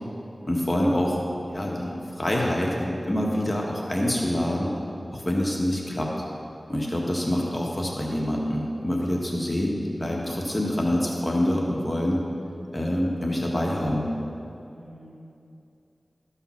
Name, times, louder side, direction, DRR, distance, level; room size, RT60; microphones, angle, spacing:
voice 1, 0.4-1.2 1.5-4.7 5.1-6.1 6.7-12.2 12.7-14.1, left 1 dB, 25° left, -2 dB, 1.4 m, -26 dB
voice 2, 6.9-7.3 14.7-15.1, right 1 dB, 75° right, -4 dB, 2.6 m, -46 dB
13.5 x 5.7 x 5.8 m, 2.7 s
wide cardioid pair, 50°, 0 cm